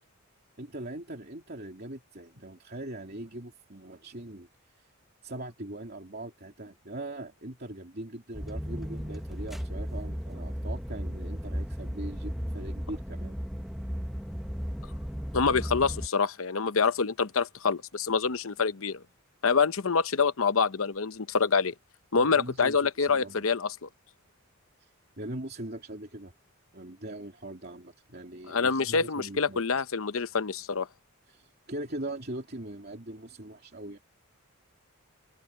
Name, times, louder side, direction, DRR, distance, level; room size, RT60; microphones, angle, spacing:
voice 1, 0.6-4.5 4.8-4.9 5.2-13.3 22.1-23.5 24.8-24.9 25.2-26.3 26.7-29.6 31.3-34.0, right 1 dB, 45° right, 2.9 m, -41 dB
sound 1, 8.3-16.1, equal, ahead, 0.7 m, -35 dB
voice 2, 15.3-19.0 19.4-21.7 22.1-23.9 28.5-30.9, left 5 dB, 70° left, 0.8 m, -26 dB
open air
head